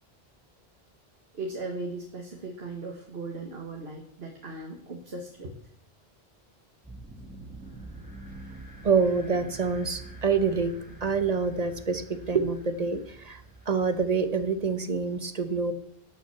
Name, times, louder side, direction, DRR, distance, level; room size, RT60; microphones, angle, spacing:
voice 1, 1.3-5.6, right 2 dB, 70° right, 0 dB, 1.8 m, -37 dB
sound 1, 6.8-14.9, right 2 dB, 10° right, 2.7 m, -46 dB
voice 2, 8.8-15.7, right 5 dB, 40° right, 10 dB, 1.1 m, -27 dB
18.5 x 6.1 x 6.9 m, 0.70 s
omnidirectional pair, 1.1 m